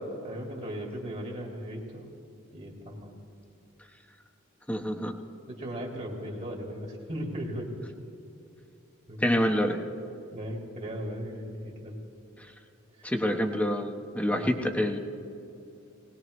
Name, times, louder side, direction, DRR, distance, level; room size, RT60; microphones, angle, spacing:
voice 1, 0.2-2.1 2.5-3.2 5.5-7.8 9.1-9.7 10.3-12.0 13.0-13.1 14.3-14.5, equal, 35° right, -1 dB, 2.3 m, -37 dB
voice 2, 4.7-5.1 9.2-9.8 13.0-15.0, equal, 5° left, 5 dB, 1.0 m, -27 dB
19.5 x 19.5 x 3.2 m, 2.9 s
head